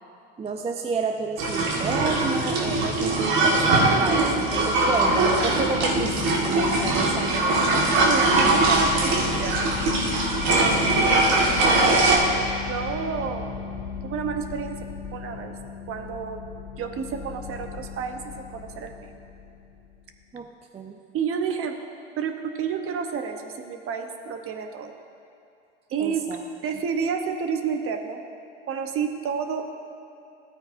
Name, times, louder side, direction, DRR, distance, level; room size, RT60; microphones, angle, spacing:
voice 1, 0.4-7.5 20.3-20.5 20.7-21.0 26.0-26.4, right 4 dB, 20° right, 4 dB, 0.5 m, -31 dB
sound 1, 1.4-12.2, right 2 dB, 60° right, 1.8 m, -21 dB
sound 2, 3.7-19.9, left 6 dB, 30° left, 2.2 m, -35 dB
voice 2, 8.0-9.8 10.4-11.3 12.7-13.5 14.0-14.8 15.1-15.5 15.9-16.4 16.8-19.2 21.1-21.8 22.2-24.9 25.9-26.2 26.6-28.2 28.7-29.7, right 6 dB, 45° right, 6 dB, 1.0 m, -30 dB
14.0 x 8.8 x 2.7 m, 2.6 s
supercardioid pair, 95°, 31 cm